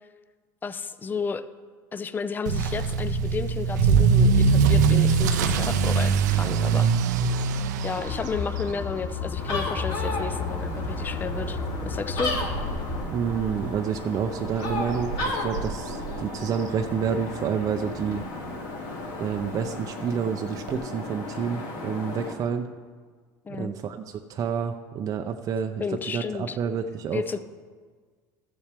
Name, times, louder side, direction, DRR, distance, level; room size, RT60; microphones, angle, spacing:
voice 1, 0.6-1.5 1.9-6.9 7.8-12.3 23.5-23.8 25.8-26.6 27.1-27.4, left 5 dB, 20° left, 12 dB, 0.5 m, -32 dB
Motor vehicle (road) / Accelerating revving vroom, 2.5-17.3 17.6-18.0 18.5-18.6 18.9-19.0 19.3-19.4 20.7-20.8, right 5 dB, 90° right, 0.6 m, -25 dB
sound 1, 8.0-13.0, left 6 dB, 45° left, 1.1 m, -33 dB
sound 2, 9.4-22.3, left 2 dB, 65° left, 2.4 m, -34 dB
voice 2, 13.0-18.2 19.2-22.7 23.5-27.4, right 7 dB, 40° right, 5 dB, 0.5 m, -29 dB
13.5 x 7.2 x 3.4 m, 1.5 s
supercardioid pair, 100°, 9 cm